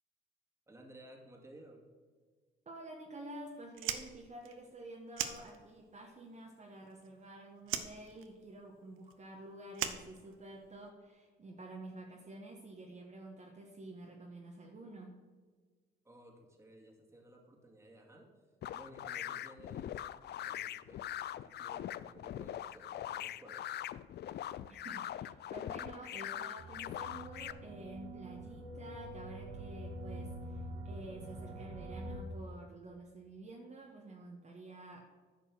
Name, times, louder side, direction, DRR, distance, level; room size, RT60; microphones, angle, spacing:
voice 1, 0.7-1.9 16.0-18.3 18.7-20.0 20.3-21.1 21.4-23.7, right 1 dB, 15° right, 0 dB, 2.2 m, -56 dB
voice 2, 2.6-15.2 24.7-35.1, right 2 dB, 35° right, -1 dB, 1.5 m, -50 dB
Fire, 3.7-6.0 6.3-7.3 7.6-10.8, right 10 dB, 85° right, 0.7 m, -40 dB
sound 1, 18.6-27.5, left 11 dB, 60° left, 0.4 m, -42 dB
sound 2, 26.6-32.2, right 1 dB, 70° right, 1.7 m, -45 dB
10.5 x 5.3 x 6.3 m, 1.5 s
cardioid pair, 90°, 20 cm